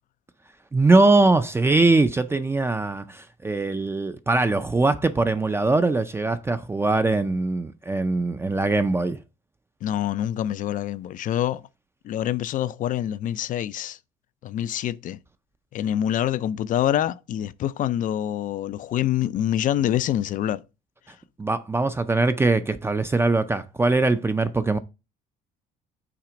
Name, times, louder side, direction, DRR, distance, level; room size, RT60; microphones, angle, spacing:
voice 1, 0.7-9.2 21.4-24.8, right 3 dB, 15° right, 0.4 m, -21 dB
voice 2, 9.8-11.7 12.0-14.0 14.4-15.2 15.7-20.6, left 11 dB, 50° left, 0.4 m, -26 dB
5.9 x 3.3 x 5.0 m
cardioid pair, 110°, 17 cm